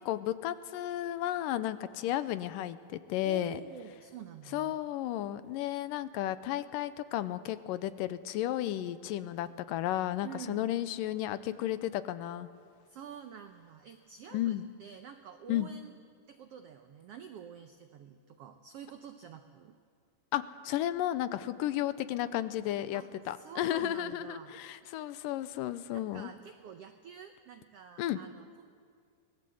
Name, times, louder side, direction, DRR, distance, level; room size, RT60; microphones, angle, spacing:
voice 1, 0.0-3.6 4.5-12.5 14.3-14.6 15.5-15.7 20.3-26.3 28.0-28.2, left 13 dB, 85° left, 13 dB, 2.4 m, -33 dB
voice 2, 3.2-4.8 10.2-10.6 12.9-15.9 16.3-19.8 22.9-24.5 25.9-28.6, right 8 dB, 90° right, 7 dB, 1.3 m, -48 dB
24.5 x 19.5 x 7.8 m, 2.2 s
omnidirectional pair, 3.9 m